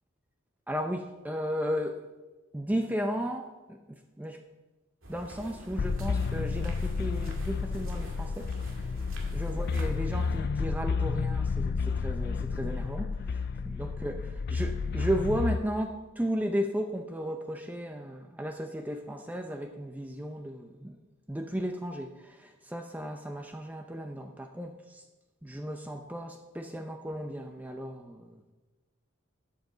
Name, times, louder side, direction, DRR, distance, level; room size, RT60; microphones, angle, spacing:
voice 1, 0.7-2.0 2.5-4.4 5.1-21.0 21.3-25.0 25.4-28.5, equal, 10° right, 4 dB, 0.6 m, -35 dB
sound 1, 5.0-10.4, right 1 dB, 80° right, 2.1 m, -45 dB
sound 2, 5.8-15.6, left 5 dB, 50° left, 0.3 m, -31 dB
12.0 x 8.9 x 4.0 m, 1.2 s
head